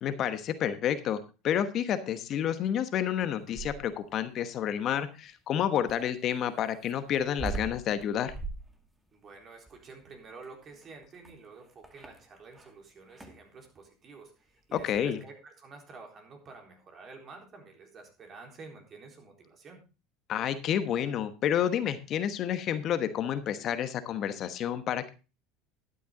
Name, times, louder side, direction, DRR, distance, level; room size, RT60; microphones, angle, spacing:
voice 1, 0.0-8.3 14.7-15.2 20.3-25.1, left 9 dB, 50° left, 11 dB, 1.1 m, -30 dB
sound 1, 3.2-4.1 5.9-12.7 13.1-13.5 14.8-15.1, right 4 dB, 10° right, 2.0 m, -42 dB
voice 2, 9.1-19.8, right 4 dB, 40° right, 3 dB, 3.9 m, -50 dB
12.0 x 9.3 x 3.8 m, 0.31 s
hypercardioid pair, 90°, 0 cm